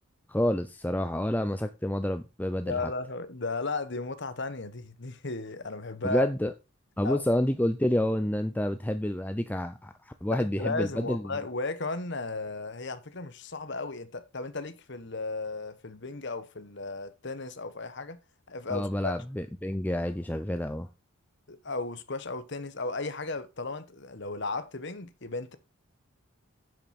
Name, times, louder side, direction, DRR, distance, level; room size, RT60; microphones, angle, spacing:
voice 1, 0.3-2.9 6.0-6.5 7.0-11.4 18.7-20.9, left 1 dB, 10° left, 0.5 m, -29 dB
voice 2, 2.6-6.3 7.0-7.2 10.3-18.2 18.5-19.1 21.5-25.6, left 3 dB, 55° left, 1.2 m, -35 dB
10.5 x 7.4 x 4.3 m
head